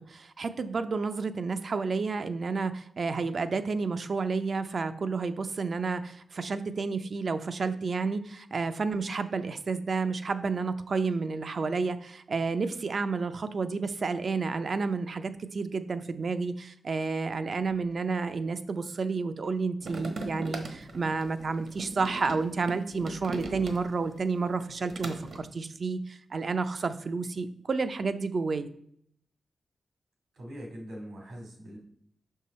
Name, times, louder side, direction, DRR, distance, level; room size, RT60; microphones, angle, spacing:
voice 1, 0.0-28.7, right 4 dB, 50° right, 11 dB, 0.5 m, -30 dB
sound 1, 19.8-24.1 24.5-25.4, right 2 dB, 65° right, 1.1 m, -39 dB
voice 2, 30.3-31.8, equal, 85° right, -1 dB, 2.5 m, -42 dB
5.9 x 5.5 x 4.2 m, 0.68 s
wide cardioid pair, 120°, 0 cm